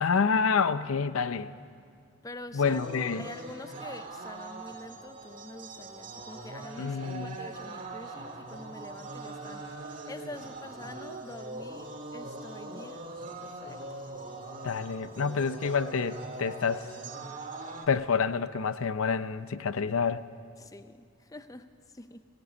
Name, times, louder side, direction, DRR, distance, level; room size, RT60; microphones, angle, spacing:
voice 1, 0.0-1.5 2.5-3.3 6.8-7.4 14.6-16.9 17.9-20.2, left 5 dB, 80° left, 14 dB, 0.6 m, -28 dB
voice 2, 2.2-2.8 3.2-13.1 13.4-13.8 20.6-22.3, left 2 dB, 15° left, 10 dB, 0.5 m, -46 dB
sound 1, 2.6-17.9, right 2 dB, 40° right, 1.7 m, -42 dB
16.5 x 16.5 x 9.4 m, 2.2 s
head